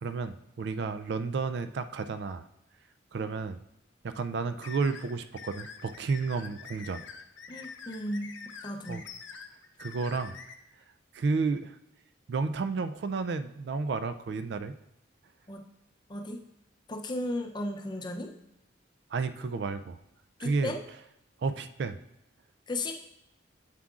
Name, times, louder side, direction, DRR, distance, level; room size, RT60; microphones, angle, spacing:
voice 1, 0.0-2.4 3.1-3.6 4.0-7.0 8.9-9.0 9.8-10.4 11.1-11.7 12.3-14.7 19.1-20.0 20.4-20.8 21.4-22.0, right 4 dB, 60° right, 11 dB, 0.3 m, -31 dB
sound 1, 4.6-10.5, left 5 dB, 75° left, 0.6 m, -46 dB
voice 2, 7.5-8.3 8.6-9.0 15.5-15.6 16.1-16.4 16.9-18.3 20.4-20.8 22.7-22.9, left 1 dB, 25° left, 3 dB, 0.5 m, -35 dB
7.4 x 7.4 x 2.4 m, 0.84 s
head